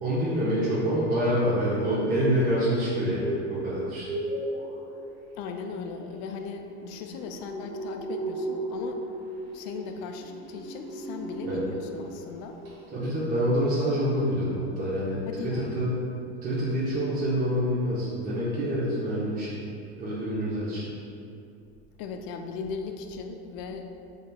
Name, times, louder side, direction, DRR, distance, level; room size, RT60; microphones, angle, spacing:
voice 1, 0.0-4.0 11.4-11.6 12.9-15.9 16.4-19.6 20.0-20.9, equal, 25° right, -8 dB, 0.6 m, -26 dB
sound 1, 3.1-12.1 12.4-12.8 13.0-13.1, right 1 dB, 45° right, 1.2 m, -36 dB
voice 2, 5.4-9.0 9.5-12.6 15.3-15.7 22.0-23.9, left 5 dB, 60° left, 5 dB, 0.4 m, -37 dB
4.0 x 3.4 x 2.2 m, 2.5 s
supercardioid pair, 110°, 32 cm